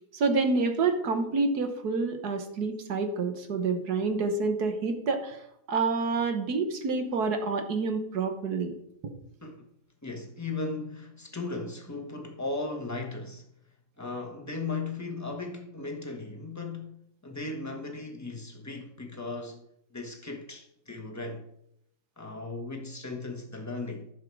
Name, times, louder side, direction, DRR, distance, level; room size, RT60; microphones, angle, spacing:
voice 1, 0.1-5.4 5.7-8.7, right 4 dB, 55° right, 1.6 m, -28 dB
voice 2, 10.0-13.5 14.0-21.5 22.2-24.1, left 3 dB, 15° left, 0.8 m, -37 dB
11.0 x 7.6 x 4.7 m
omnidirectional pair, 2.1 m